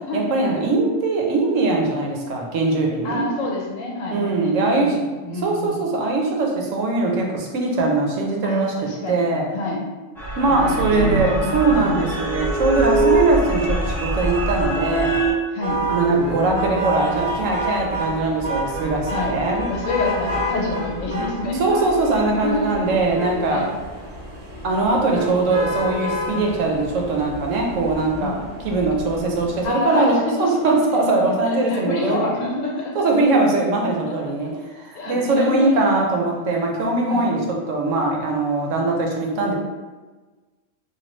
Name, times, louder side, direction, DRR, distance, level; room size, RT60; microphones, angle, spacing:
voice 1, 0.1-3.2 4.1-5.0 5.4-9.5 10.4-15.2 15.9-19.7 21.6-23.7 24.6-28.4 28.6-32.2 33.0-39.5, right 2 dB, 80° right, 0 dB, 1.0 m, -21 dB
voice 2, 3.0-5.8 8.4-9.2 9.5-9.8 10.5-12.0 15.5-15.8 19.1-19.3 19.7-21.6 22.4-22.7 23.5-23.7 28.2-28.4 29.6-30.5 31.4-33.1 34.0-34.1 34.9-35.7 37.1-37.3, left 2 dB, 90° left, -2 dB, 1.1 m, -27 dB
sound 1, 10.2-15.3, right 2 dB, 5° left, 0.4 m, -23 dB
sound 2, 15.6-29.7, equal, 45° right, 0.7 m, -30 dB
3.1 x 2.2 x 3.0 m, 1.3 s
omnidirectional pair, 1.3 m